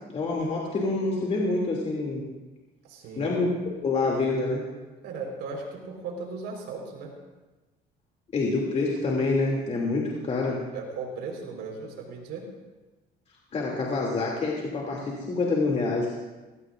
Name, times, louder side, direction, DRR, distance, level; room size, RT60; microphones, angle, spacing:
voice 1, 0.1-2.2 3.2-3.5 3.8-4.7 8.3-10.6 13.5-16.2, left 3 dB, 40° left, -3 dB, 2.9 m, -26 dB
voice 2, 2.9-3.4 5.0-7.1 10.7-12.5, right 4 dB, 85° right, 0 dB, 4.7 m, -37 dB
21.5 x 17.5 x 2.6 m, 1.2 s
cardioid pair, 110°, 17 cm